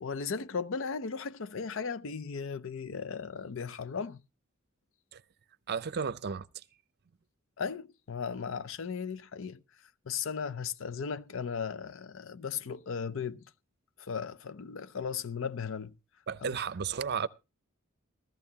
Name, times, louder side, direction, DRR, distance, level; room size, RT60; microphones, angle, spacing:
voice 1, 0.0-4.2 7.6-9.6 10.1-13.4 14.0-16.0 16.4-16.6, left 6 dB, 70° left, 0.6 m, -36 dB
voice 2, 5.7-6.5 16.3-17.3, right 6 dB, 55° right, 0.5 m, -33 dB
14.5 x 14.5 x 2.8 m
head